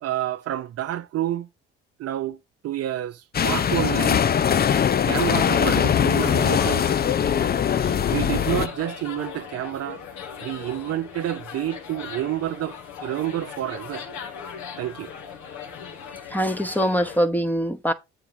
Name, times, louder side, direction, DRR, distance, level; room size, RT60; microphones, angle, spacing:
voice 1, 0.0-1.5 2.0-2.4 2.6-4.3 5.1-7.0 8.1-10.0 10.4-14.1 14.8-15.1, right 13 dB, 55° right, 0.6 m, -29 dB
sound 1, 3.3-8.7, left 8 dB, 30° left, 0.5 m, -21 dB
sound 2, 6.2-17.2, left 7 dB, 70° left, 1.7 m, -38 dB
voice 2, 16.3-17.9, equal, 5° left, 1.0 m, -23 dB
8.0 x 3.7 x 5.0 m
hypercardioid pair, 55°, 30 cm